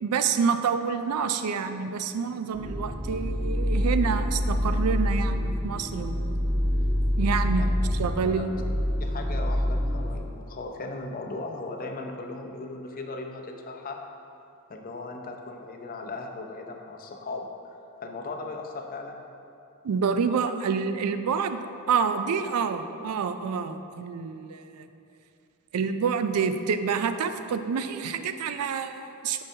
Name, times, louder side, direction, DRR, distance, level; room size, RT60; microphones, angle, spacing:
voice 1, 0.0-6.4 7.2-7.7 8.0-8.5 19.8-21.6 21.9-24.9 25.7-29.4, right 6 dB, 90° right, 9 dB, 0.4 m, -28 dB
sound 1, 2.5-10.2, equal, 5° right, 1.1 m, -26 dB
voice 2, 9.0-14.0 14.7-19.2, left 3 dB, 40° left, 3 dB, 0.6 m, -37 dB
8.8 x 5.4 x 2.7 m, 2.6 s
head